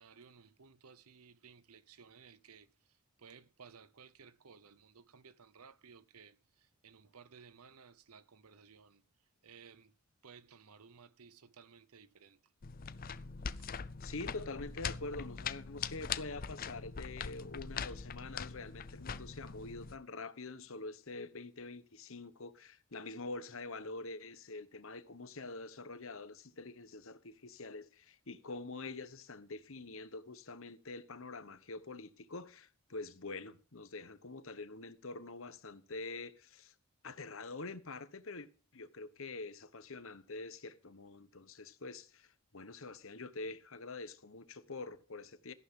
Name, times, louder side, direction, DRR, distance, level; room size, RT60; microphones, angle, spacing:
voice 1, 0.0-9.9 10.2-12.5 13.1-13.3 13.6-13.7, right 6 dB, 90° right, 0.8 m, -58 dB
sound 1, 12.6-20.0, left 6 dB, 40° left, 0.5 m, -42 dB
voice 2, 14.0-36.7 37.0-38.5 38.7-45.5, left 3 dB, 70° left, 1.1 m, -46 dB
13.5 x 11.5 x 3.7 m
head